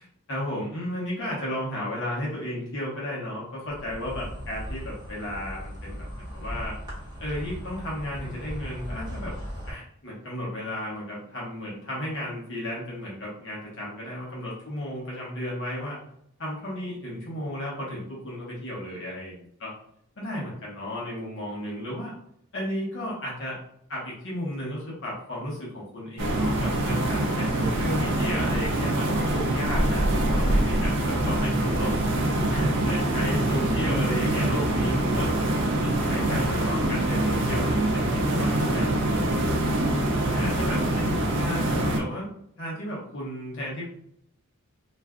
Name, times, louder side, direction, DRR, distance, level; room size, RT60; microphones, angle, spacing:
voice 1, 0.0-6.8 7.2-9.3 9.7-16.0 16.4-19.7 20.2-22.1 22.5-23.6 23.9-31.9 32.5-35.3 35.8-38.9 40.3-43.8, left 1 dB, 55° left, -6 dB, 0.9 m, -34 dB
Insect, 3.7-9.7, equal, 20° right, 0.9 m, -37 dB
sound 1, 26.2-42.0, right 1 dB, 55° right, 0.5 m, -24 dB
2.5 x 2.2 x 3.5 m, 0.72 s
head